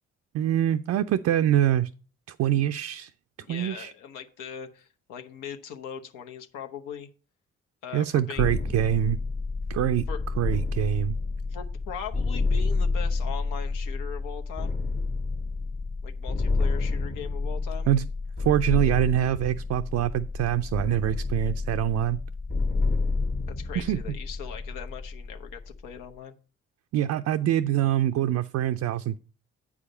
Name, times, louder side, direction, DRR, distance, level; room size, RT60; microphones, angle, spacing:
voice 1, 0.3-1.9 2.3-3.1 3.5-3.9 7.9-9.2 9.7-10.1 10.4-11.2 17.9-18.1 18.4-22.2 23.8-24.0 26.9-29.2, right 11 dB, 55° right, 0.4 m, -24 dB
voice 2, 3.5-7.1 7.8-8.5 10.1-10.2 11.5-14.8 16.0-17.9 23.5-26.3, left 8 dB, 80° left, 0.9 m, -40 dB
sound 1, 8.3-26.0, left 3 dB, 30° left, 1.0 m, -29 dB
8.2 x 4.9 x 5.4 m
hypercardioid pair, 45°, 32 cm